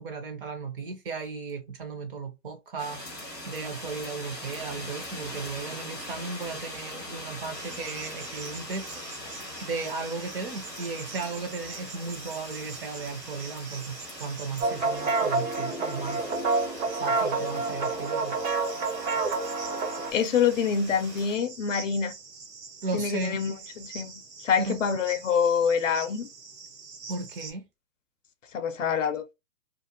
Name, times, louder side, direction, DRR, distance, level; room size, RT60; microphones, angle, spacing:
voice 1, 0.0-9.0 9.6-16.3 17.0-18.3 22.8-23.4 24.7-24.8 27.1-27.7, right 4 dB, 35° right, 0.7 m, -35 dB
sound 1, 2.8-21.3, left 1 dB, ahead, 0.4 m, -42 dB
Cricket, 7.5-27.5, right 5 dB, 75° right, 1.2 m, -45 dB
sound 2, 14.6-20.1, right 3 dB, 50° right, 1.1 m, -28 dB
voice 2, 20.1-22.1 22.9-26.3 28.5-29.2, left 7 dB, 55° left, 0.5 m, -26 dB
2.5 x 2.1 x 2.7 m
hypercardioid pair, 140°, 48 cm